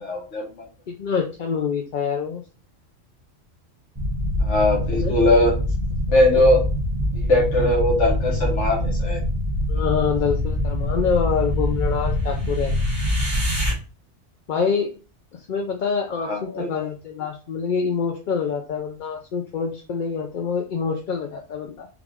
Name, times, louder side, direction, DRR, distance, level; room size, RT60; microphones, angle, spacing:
voice 1, 0.0-0.5 4.4-5.6 6.1-6.6 7.1-9.2 16.1-16.7, left 1 dB, 80° left, -1 dB, 1.3 m, -20 dB
voice 2, 0.9-2.4 4.9-5.1 9.7-12.7 14.5-14.9 15.3-21.9, left 6 dB, 55° left, 3 dB, 0.6 m, -26 dB
sound 1, 4.0-13.7, left 1 dB, 25° right, 1.8 m, -24 dB
5.0 x 2.5 x 3.5 m, 0.35 s
omnidirectional pair, 1.2 m